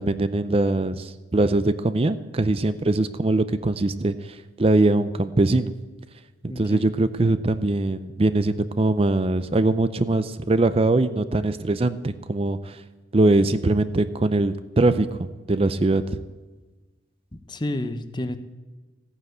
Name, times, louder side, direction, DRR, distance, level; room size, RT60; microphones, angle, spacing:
voice 1, 0.0-5.7 6.4-12.8 13.1-16.2, right 2 dB, 30° right, 12 dB, 0.5 m, -22 dB
voice 2, 6.5-6.9 17.5-18.4, left 1 dB, 25° left, 10 dB, 0.9 m, -30 dB
14.5 x 9.8 x 7.9 m, 1.3 s
head